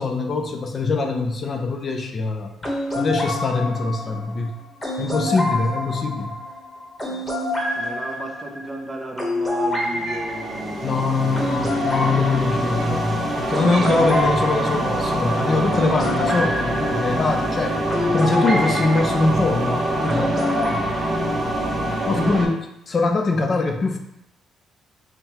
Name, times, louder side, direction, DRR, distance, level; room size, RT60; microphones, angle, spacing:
voice 1, 0.0-4.6 5.0-6.4 10.8-17.8 18.0-20.4 22.0-24.0, left 3 dB, 35° left, 4 dB, 0.5 m, -23 dB
sound 1, 2.6-19.0 20.1-20.8, left 1 dB, 15° left, 1.0 m, -27 dB
voice 2, 4.9-5.3 7.0-7.3 7.7-11.5 21.2-21.4 22.0-22.6, right 2 dB, 15° right, 2 dB, 0.5 m, -36 dB
sound 2, 9.8-22.5, right 1 dB, 40° right, 1.0 m, -25 dB
Cat, 10.0-10.3 11.4-11.6 12.7-13.0 13.6-14.1 15.1-15.4, right 4 dB, 65° right, 0.6 m, -39 dB
5.4 x 2.2 x 2.9 m, 0.82 s
cardioid pair, 135°, 0 cm